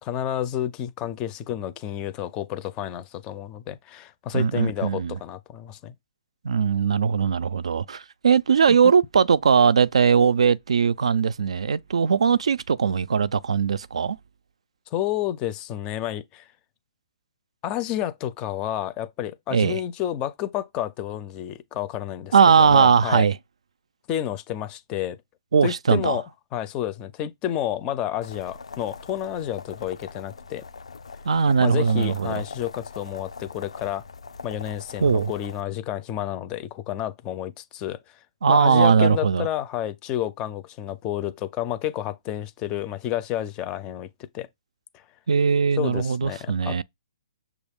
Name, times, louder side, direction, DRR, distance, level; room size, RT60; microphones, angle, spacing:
voice 1, 0.0-5.9 8.7-8.9 14.9-16.5 17.6-23.3 24.1-25.2 25.6-26.2 26.5-30.7 31.6-34.0 34.4-38.2 38.5-44.1 44.3-44.5 44.9-45.0 45.8-46.8, left 12 dB, 25° left, 0.4 m, -30 dB
voice 2, 4.3-5.2 6.4-14.2 19.5-19.8 22.3-23.4 25.5-26.2 31.3-32.4 35.0-35.3 38.4-39.5 45.3-46.8, right 6 dB, 80° right, 0.3 m, -20 dB
sound 1, 28.2-35.6, left 4 dB, 85° left, 0.4 m, -41 dB
6.1 x 2.4 x 3.5 m
hypercardioid pair, 145°, 3 cm